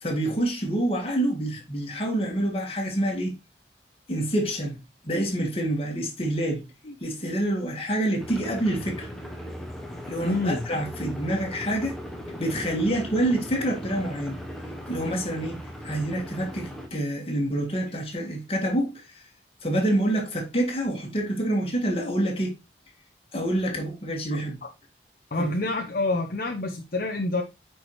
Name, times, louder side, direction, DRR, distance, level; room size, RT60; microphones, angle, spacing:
voice 1, 0.0-3.3 4.1-4.8 5.0-6.6 7.0-9.1 10.1-12.0 12.4-14.4 14.9-19.2 19.6-22.5 23.3-24.6 25.4-25.5, right 1 dB, 30° left, 1.9 m, -27 dB
sound 1, 8.2-16.9, equal, ahead, 1.0 m, -38 dB
voice 2, 10.2-10.6 24.3-24.7 25.3-27.4, left 2 dB, 55° left, 0.8 m, -27 dB
8.6 x 4.7 x 3.1 m
head